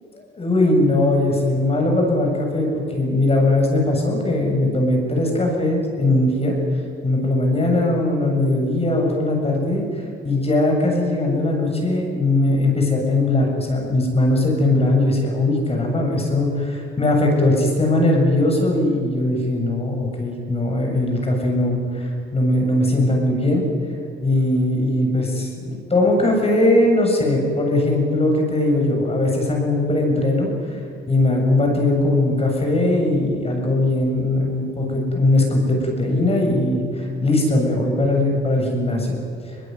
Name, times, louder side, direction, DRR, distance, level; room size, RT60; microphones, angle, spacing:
voice 1, 0.1-6.6 7.0-23.7 24.2-30.8 31.1-39.1, left 1 dB, 30° left, 1 dB, 7.4 m, -20 dB
22.5 x 20.5 x 9.5 m, 2.3 s
cardioid pair, 90°, 20 cm